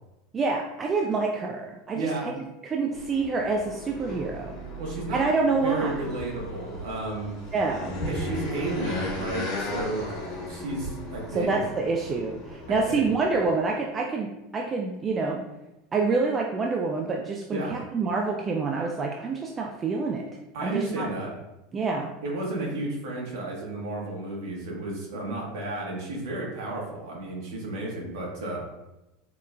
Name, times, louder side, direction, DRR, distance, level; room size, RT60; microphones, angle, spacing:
voice 1, 0.3-2.3 2.6-4.5 5.1-6.0 7.5-7.9 11.3-15.4 15.9-20.2 20.6-21.1 21.7-22.1, right 4 dB, 30° right, 0 dB, 0.4 m, -27 dB
voice 2, 1.9-2.3 4.8-5.2 5.6-7.3 8.1-11.6 12.7-13.1 17.5-17.7 20.5-21.3 22.2-28.6, right 2 dB, 60° right, -2 dB, 1.2 m, -32 dB
sound 1, 2.9-13.5, left 1 dB, 70° left, 1.0 m, -36 dB
4.7 x 2.1 x 2.4 m, 0.97 s
figure-of-eight pair, 75°, 0 cm